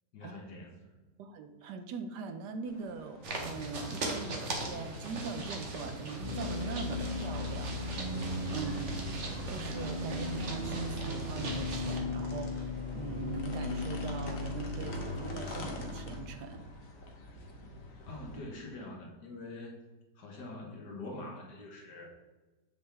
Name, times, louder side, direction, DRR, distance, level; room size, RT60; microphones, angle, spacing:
voice 1, 0.1-1.0 18.1-19.8 20.2-22.1, left 2 dB, 75° left, 0 dB, 2.0 m, -44 dB
voice 2, 1.2-7.8 8.1-8.9 9.5-16.7, right 5 dB, 75° right, 7 dB, 1.3 m, -42 dB
sound 1, 2.7-18.4, left 2 dB, 55° left, 1.3 m, -48 dB
sound 2, 3.2-12.0, right 1 dB, 45° right, 1.3 m, -39 dB
sound 3, 6.2-16.2, left 2 dB, 30° right, 1.2 m, -37 dB
7.4 x 6.5 x 3.4 m, 1.2 s
omnidirectional pair, 1.8 m